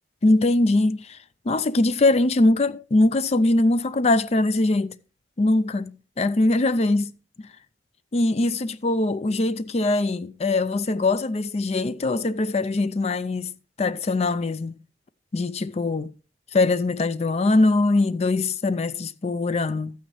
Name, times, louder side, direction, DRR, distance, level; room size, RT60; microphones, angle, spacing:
voice 1, 0.2-1.2 1.5-5.0 5.4-7.1 7.4-7.5 8.1-13.5 13.8-14.7 15.3-16.1 16.5-19.9, left 2 dB, 35° left, 0.4 m, -22 dB
12.5 x 9.1 x 3.1 m
head